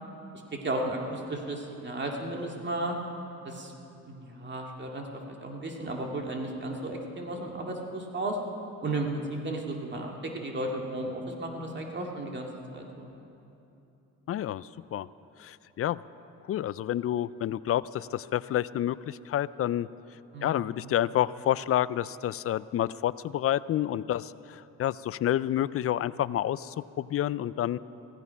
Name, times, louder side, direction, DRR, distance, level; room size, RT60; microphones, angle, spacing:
voice 1, 0.3-3.0 3.4-3.7 4.1-8.4 8.8-13.1 20.3-20.6, right 2 dB, 35° right, 1 dB, 2.2 m, -34 dB
voice 2, 14.3-15.1 15.4-16.0 16.5-19.9 20.4-27.8, left 12 dB, 50° left, 18 dB, 0.4 m, -29 dB
16.0 x 15.0 x 5.7 m, 2.8 s
cardioid pair, 90°, 30 cm